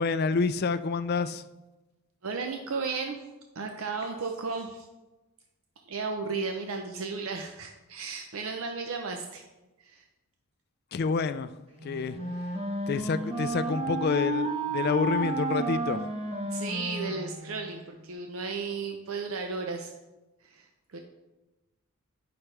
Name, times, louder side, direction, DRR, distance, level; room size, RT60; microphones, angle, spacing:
voice 1, 0.0-1.4 10.9-11.5 11.8-12.2 12.9-16.0, left 4 dB, 45° left, 12 dB, 0.3 m, -28 dB
voice 2, 2.2-3.2 3.5-4.9 5.9-9.4 9.8-10.0 16.5-19.9 20.4-21.0, right 4 dB, 65° right, 4 dB, 0.6 m, -34 dB
Wind instrument woodwind instrument, 11.8-17.9, right 1 dB, 25° right, 1.2 m, -32 dB
10.0 x 5.8 x 3.3 m, 1.1 s
head